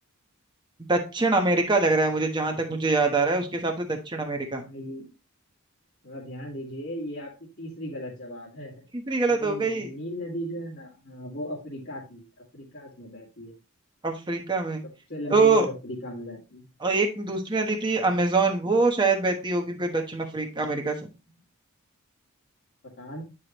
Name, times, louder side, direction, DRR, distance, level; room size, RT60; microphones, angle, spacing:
voice 1, 0.9-4.6 8.9-9.9 14.0-14.8 15.3-15.7 16.8-21.0, right 3 dB, 20° right, 3 dB, 1.1 m, -24 dB
voice 2, 4.4-5.1 6.0-8.8 9.3-13.5 15.1-16.7 22.8-23.2, equal, 50° left, -6 dB, 2.0 m, -37 dB
9.4 x 4.9 x 3.0 m, 0.29 s
head